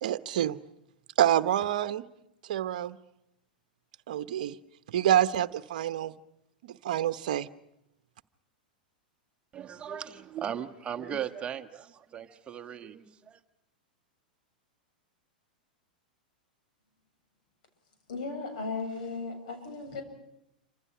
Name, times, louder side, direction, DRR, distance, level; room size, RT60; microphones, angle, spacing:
voice 1, 0.0-0.6 1.2-2.0 2.5-3.0 4.1-4.5 4.9-6.1 6.6-7.5, right 11 dB, 60° right, 1.0 m, -27 dB
voice 2, 9.5-13.4, right 8 dB, 25° right, 1.3 m, -38 dB
voice 3, 18.1-20.0, left 3 dB, 60° left, 7.7 m, -36 dB
29.0 x 26.0 x 6.0 m
figure-of-eight pair, 95°, 5 cm